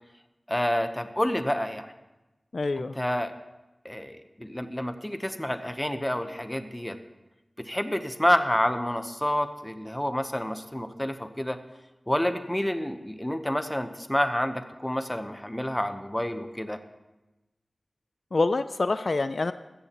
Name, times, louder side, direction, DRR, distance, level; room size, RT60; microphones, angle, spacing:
voice 1, 0.5-1.9 2.8-3.3 3.8-7.0 7.6-11.6 12.1-16.8, left 1 dB, 10° left, 9 dB, 0.8 m, -28 dB
voice 2, 2.5-3.0 18.3-19.5, left 3 dB, 65° left, 12 dB, 0.4 m, -26 dB
15.5 x 13.5 x 3.0 m, 1.0 s
wide cardioid pair, 75°, 0 cm